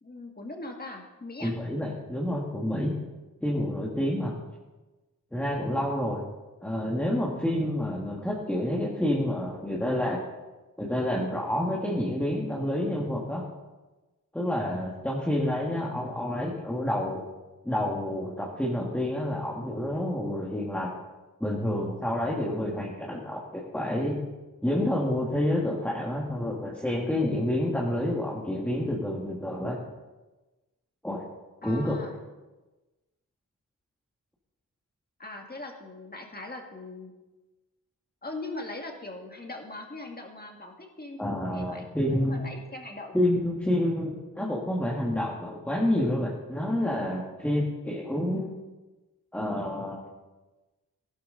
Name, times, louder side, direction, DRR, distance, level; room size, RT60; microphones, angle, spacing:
voice 1, 0.0-1.5 31.6-32.2 35.2-37.1 38.2-43.2, left 2 dB, 30° left, 2 dB, 1.8 m, -40 dB
voice 2, 1.4-2.9 3.4-4.3 5.3-6.3 6.6-10.2 10.8-13.4 14.3-17.2 17.6-20.9 21.4-24.2 24.6-29.8 31.0-31.2 31.6-32.0 41.2-42.5 43.1-48.5 49.3-50.0, left 1 dB, 5° left, -3 dB, 1.6 m, -28 dB
15.5 x 12.0 x 3.8 m, 1.1 s
wide cardioid pair, 130°, 33 cm